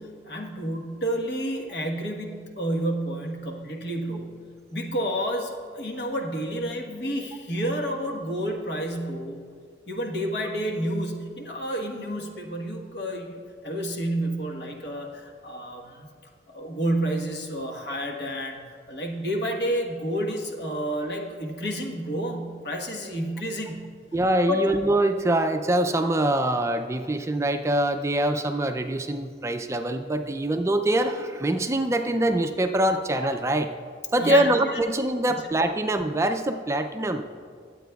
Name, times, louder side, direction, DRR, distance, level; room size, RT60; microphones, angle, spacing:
voice 1, 0.0-4.3 4.7-9.5 9.9-16.1 16.5-23.9 24.5-24.6 34.2-34.8, equal, 70° left, 1 dB, 1.2 m, -30 dB
voice 2, 24.1-33.7 34.1-37.2, right 1 dB, 15° right, 6 dB, 0.3 m, -24 dB
22.0 x 8.3 x 2.3 m, 2.1 s
head